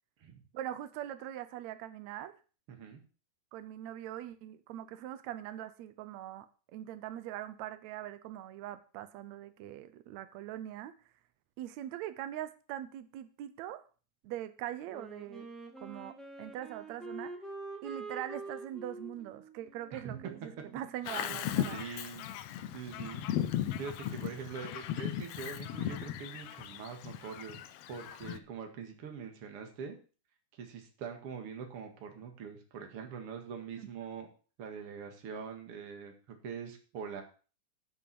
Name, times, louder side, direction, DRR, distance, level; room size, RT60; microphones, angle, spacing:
voice 1, 0.5-2.3 3.5-10.9 11.6-13.8 14.2-15.5 15.8-17.3 17.8-21.8 33.8-33.9, right 12 dB, 70° right, 11 dB, 1.8 m, -42 dB
voice 2, 2.7-3.0 19.9-20.2 21.3-21.4 21.6-22.2 22.7-23.2 23.8-27.6 27.9-30.0 30.5-34.3 34.6-36.1 36.4-37.2, right 6 dB, 50° right, 4 dB, 2.6 m, -43 dB
Wind instrument woodwind instrument, 14.8-21.6, right 3 dB, ahead, 0.9 m, -46 dB
Bird vocalization bird call bird song, 21.1-28.4, left 11 dB, 85° left, 1.4 m, -37 dB
10.5 x 6.1 x 6.8 m, 0.37 s
omnidirectional pair, 3.7 m